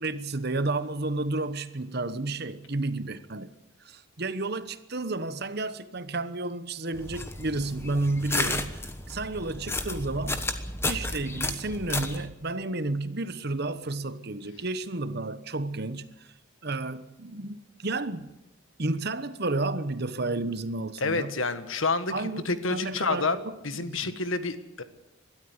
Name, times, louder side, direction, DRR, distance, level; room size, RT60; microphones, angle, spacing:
voice 1, 0.0-3.5 3.8-10.5 10.8-16.3 16.6-18.4 18.8-21.4 22.1-24.2, right 2 dB, 50° right, 1.1 m, -32 dB
sound 1, 6.9-12.3, left 2 dB, 10° left, 1.2 m, -32 dB
voice 2, 21.0-22.1 22.4-23.4 23.6-24.8, left 3 dB, 70° left, 1.6 m, -28 dB
21.5 x 13.0 x 9.6 m
head